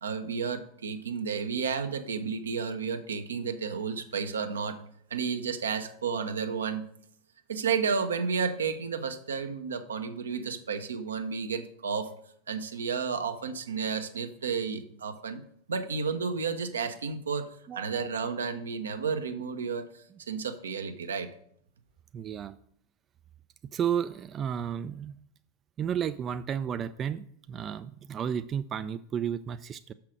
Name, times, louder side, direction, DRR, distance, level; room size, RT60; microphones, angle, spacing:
voice 1, 0.0-4.8 5.1-6.9 7.5-12.1 12.5-15.4 15.7-17.5 17.7-21.3, right 5 dB, 75° right, 7 dB, 0.8 m, -32 dB
voice 2, 17.7-18.0 22.1-22.6 23.7-25.1 25.8-29.9, right 8 dB, 30° right, 11 dB, 0.3 m, -32 dB
6.4 x 5.8 x 6.2 m, 0.65 s
figure-of-eight pair, 85°, 0 cm